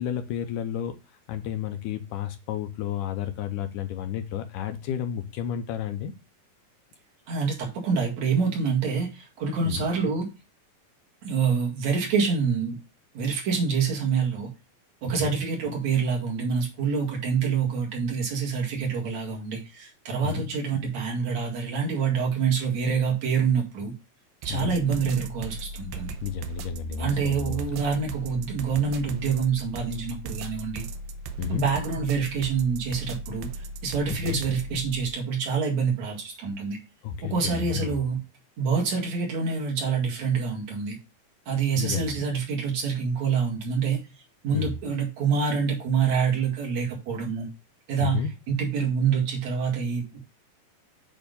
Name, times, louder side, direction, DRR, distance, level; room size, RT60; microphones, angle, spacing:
voice 1, 0.0-6.1 9.6-9.9 15.2-15.3 20.2-20.5 24.5-24.7 26.2-27.6 31.4-31.6 34.1-34.4 37.0-38.0 41.7-42.2 44.5-44.7 48.0-48.3, left 8 dB, 75° left, 8 dB, 2.0 m, -31 dB
voice 2, 7.3-10.3 11.2-12.8 13.1-14.5 15.0-23.9 24.4-26.1 27.0-30.8 31.5-36.8 37.2-38.2 38.6-41.0 41.5-44.0 44.4-47.5 47.9-50.2, right 5 dB, 50° right, 0 dB, 3.0 m, -26 dB
sound 1, 24.4-35.1, right 2 dB, 80° right, 1.9 m, -37 dB
8.8 x 3.7 x 5.2 m, 0.27 s
omnidirectional pair, 4.2 m